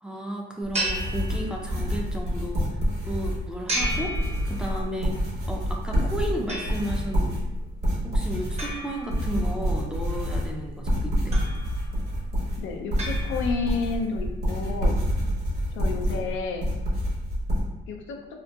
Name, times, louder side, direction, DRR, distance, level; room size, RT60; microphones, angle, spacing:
voice 1, 0.0-2.8 3.0-4.2 4.4-5.2 5.5-7.5 8.0-11.4, equal, 5° right, -1 dB, 0.4 m, -33 dB
sound 1, 0.6-17.6, equal, 55° right, 1.1 m, -27 dB
sound 2, 0.7-2.0 3.7-5.0 6.5-7.2 8.6-9.7 11.3-12.0 13.0-13.9, right 1 dB, 30° right, 0.7 m, -34 dB
voice 2, 12.6-14.9 15.7-16.6 17.9-18.2, left 4 dB, 85° left, 3 dB, 0.4 m, -30 dB
2.8 x 2.4 x 2.3 m, 1.0 s
cardioid pair, 90°, 20 cm